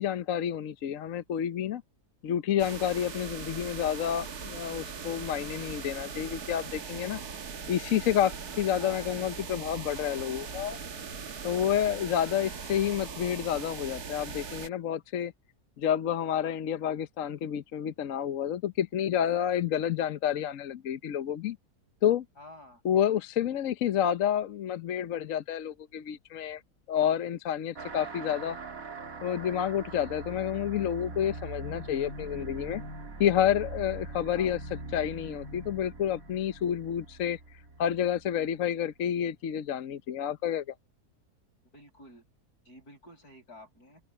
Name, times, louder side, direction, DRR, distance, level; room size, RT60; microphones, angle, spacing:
voice 1, 0.0-1.8 2.2-7.2 7.7-10.8 11.4-15.3 15.8-21.6 22.0-22.2 22.8-26.6 26.9-28.6 29.2-32.8 33.2-34.6 34.9-37.4 37.8-40.6, left 10 dB, 65° left, 1.1 m, -29 dB
sound 1, 2.6-14.7, right 5 dB, 80° right, 2.2 m, -40 dB
voice 2, 3.0-3.5 8.8-9.2 12.2-12.5 22.4-22.8 32.8-32.9 34.3-34.6 41.7-42.2 42.7-44.0, left 1 dB, 85° left, 8.6 m, -51 dB
sound 2, 27.7-38.7, right 3 dB, 60° right, 2.9 m, -42 dB
open air
omnidirectional pair, 1.6 m